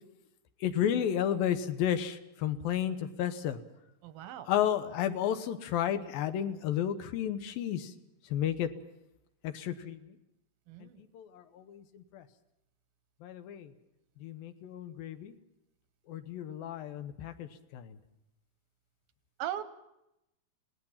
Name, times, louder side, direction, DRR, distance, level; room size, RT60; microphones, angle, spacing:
voice 1, 0.6-3.6 4.5-7.9 8.3-8.7 9.4-10.0 11.1-12.2 13.2-13.7 14.2-15.3 16.1-18.0, left 10 dB, 85° left, 10 dB, 2.9 m, -32 dB
voice 2, 4.0-4.5 10.7-11.0 19.4-19.6, right 12 dB, 90° right, 11 dB, 2.8 m, -38 dB
27.5 x 18.5 x 5.8 m, 0.88 s
omnidirectional pair, 4.0 m